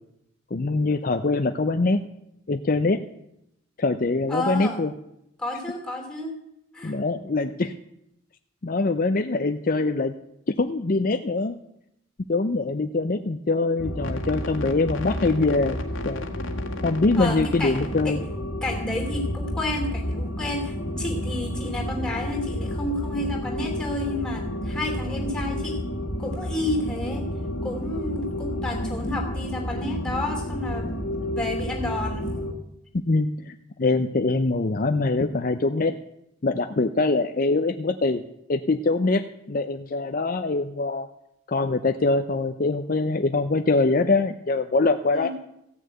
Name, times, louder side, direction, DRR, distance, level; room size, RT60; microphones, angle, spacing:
voice 1, 0.5-2.0 2.5-3.0 3.8-4.9 6.8-7.7 8.6-10.1 10.5-11.6 12.3-15.8 16.0-16.2 16.8-18.2 33.1-36.0 36.4-38.2 38.5-41.1 41.5-45.3, left 3 dB, 45° left, 8 dB, 0.6 m, -23 dB
voice 2, 4.3-4.8 5.4-6.4 6.7-7.0 17.2-18.2 18.6-25.8 26.2-27.3 27.6-31.0 31.3-32.3 45.1-45.3, left 1 dB, 5° left, 1 dB, 3.0 m, -31 dB
sound 1, 13.8-32.5, left 1 dB, 80° left, 1.8 m, -30 dB
15.5 x 6.5 x 9.1 m, 0.81 s
head